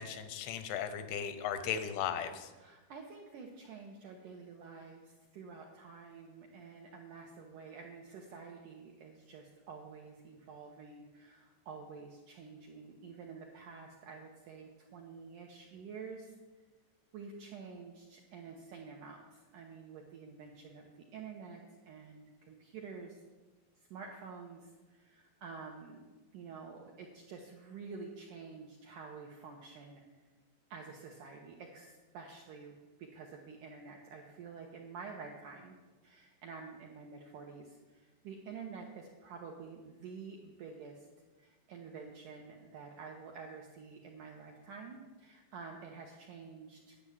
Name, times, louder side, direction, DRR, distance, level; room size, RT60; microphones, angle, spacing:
voice 1, 0.0-2.5, left 8 dB, 90° left, 9 dB, 3.2 m, -36 dB
voice 2, 2.5-16.4 17.1-23.2 23.8-26.1 26.3-30.2 30.7-35.8 36.0-41.1 41.4-47.0, right 5 dB, 80° right, 1 dB, 1.9 m, -49 dB
10.5 x 8.6 x 7.2 m, 1.2 s
omnidirectional pair, 5.0 m